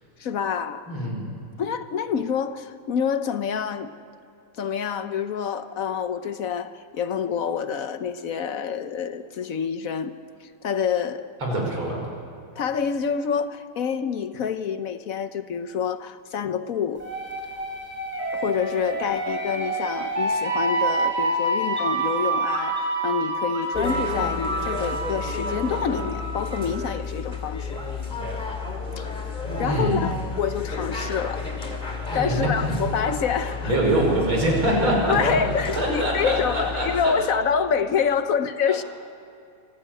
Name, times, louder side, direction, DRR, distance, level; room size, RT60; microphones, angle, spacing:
voice 1, 0.2-1.1 1.6-3.9 4.6-10.1 10.4-11.3 12.6-17.1 18.3-27.8 29.0-29.1 29.6-31.5 32.1-33.8 35.1-38.8, left 7 dB, 60° left, 0.9 m, -27 dB
voice 2, 0.9-1.3 11.4-12.1 29.6-30.1 32.1-32.8 33.6-35.2 35.7-37.1 38.7-38.9, right 1 dB, 80° right, 5.9 m, -24 dB
sound 1, 17.0-26.7, right 2 dB, 5° right, 5.9 m, -27 dB
sound 2, 23.7-37.1, left 4 dB, 20° left, 2.5 m, -31 dB
25.5 x 14.5 x 8.9 m
omnidirectional pair, 2.3 m